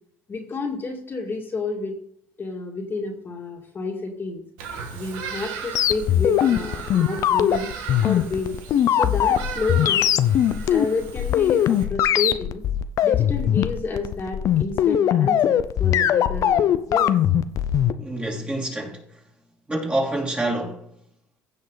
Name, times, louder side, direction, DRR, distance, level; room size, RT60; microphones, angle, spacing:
voice 1, 0.3-2.0 2.4-4.4 4.9-7.7 8.0-8.5 8.9-10.1 10.7-12.6 13.0-17.1, left 3 dB, 35° left, 2.2 m, -30 dB
Bird vocalization bird call bird song, 4.6-11.8, right 6 dB, 85° right, 1.8 m, -37 dB
sound 1, 5.7-17.9, left 10 dB, 55° left, 0.7 m, -20 dB
voice 2, 18.0-19.2 19.7-20.9, right 1 dB, 15° right, 3.1 m, -27 dB
16.0 x 5.4 x 4.0 m
supercardioid pair, 95°, 7 cm